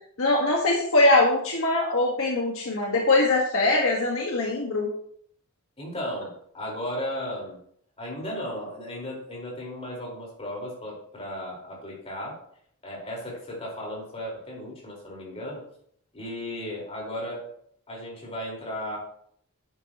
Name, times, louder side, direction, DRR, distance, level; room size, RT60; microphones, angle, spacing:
voice 1, 0.2-4.9, left 2 dB, 65° left, -1 dB, 1.6 m, -22 dB
voice 2, 5.8-7.6 8.0-12.4 12.8-15.6 16.1-17.5 17.9-19.0, left 1 dB, 25° left, -3 dB, 4.6 m, -35 dB
11.0 x 9.6 x 3.0 m, 0.64 s
head